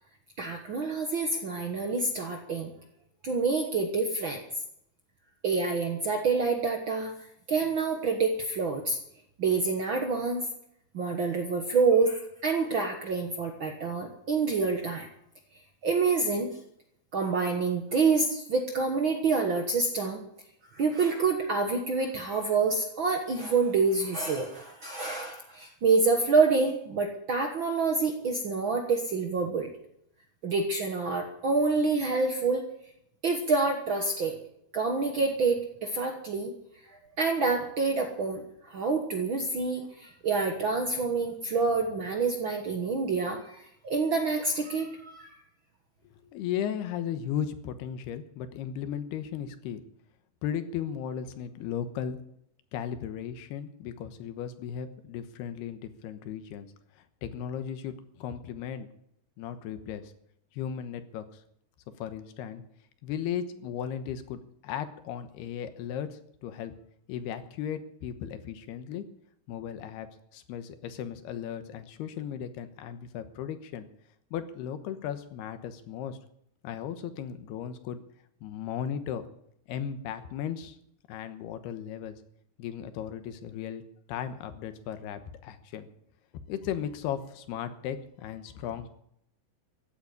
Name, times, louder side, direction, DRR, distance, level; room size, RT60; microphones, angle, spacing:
voice 1, 0.4-2.7 3.2-4.4 5.4-7.1 7.5-9.0 9.4-10.5 10.9-15.1 15.8-16.6 17.1-20.2 20.7-29.7 30.4-32.7 33.2-34.4 34.7-36.5 36.9-45.4, right 4 dB, 85° right, 4 dB, 1.1 m, -27 dB
voice 2, 46.3-49.8 50.4-52.2 52.7-56.7 57.2-58.9 59.4-60.1 60.5-61.4 62.0-62.6 63.0-66.7 67.1-69.0 69.5-70.1 70.3-73.9 74.3-76.2 76.6-78.0 78.4-79.3 79.7-80.8 81.1-82.1 82.6-83.8 84.1-85.9 86.5-88.9, left 9 dB, 90° left, 10 dB, 3.2 m, -36 dB
15.5 x 9.0 x 9.8 m, 0.73 s
omnidirectional pair, 4.5 m